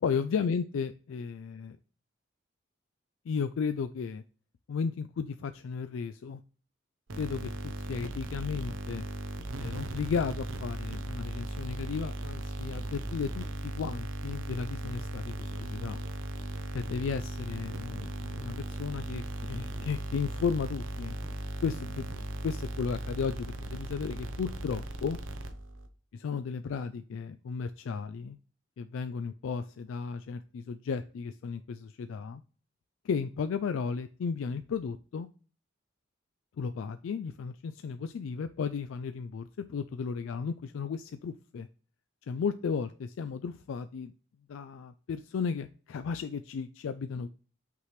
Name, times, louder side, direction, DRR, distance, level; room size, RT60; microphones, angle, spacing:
voice 1, 0.0-1.8 3.3-4.2 4.7-6.4 7.2-9.1 9.6-16.0 16.7-21.2 21.6-22.1 22.4-25.2 26.1-28.4 28.8-32.4 33.0-35.3 36.6-41.7 42.3-44.1 44.5-47.3, left 6 dB, 90° left, 10 dB, 0.3 m, -34 dB
sound 1, 7.1-25.9, right 1 dB, 90° right, 0.8 m, -37 dB
5.8 x 3.2 x 5.8 m, 0.39 s
head